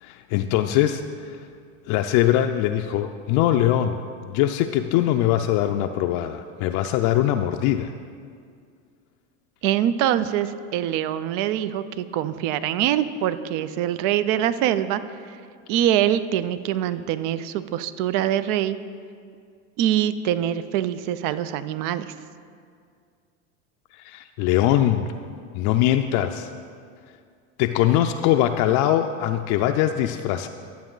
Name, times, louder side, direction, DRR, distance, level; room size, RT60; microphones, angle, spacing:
voice 1, 0.0-1.4 1.9-7.9 24.0-25.0 25.5-26.5 27.6-30.5, left 12 dB, 60° left, 6 dB, 0.5 m, -22 dB
voice 2, 9.6-15.0 15.7-18.8 19.8-22.0, right 11 dB, 60° right, 14 dB, 0.5 m, -24 dB
11.0 x 7.2 x 3.9 m, 2.2 s
supercardioid pair, 110°, 36 cm